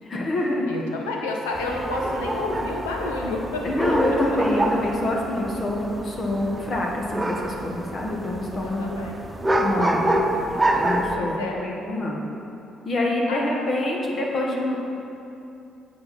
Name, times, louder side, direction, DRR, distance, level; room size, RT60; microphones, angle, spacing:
voice 1, 0.0-0.7 3.6-9.1 9.6-10.2 10.7-12.2 12.9-14.8, left 1 dB, 50° left, -1 dB, 1.6 m, -26 dB
voice 2, 0.7-3.7 8.6-9.2 11.1-11.6 13.3-13.6, left 2 dB, 90° left, 0 dB, 1.1 m, -30 dB
sound 1, 1.5-11.2, right 1 dB, 15° right, 1.1 m, -27 dB
9.5 x 7.9 x 4.4 m, 2.7 s
hypercardioid pair, 50°, 0 cm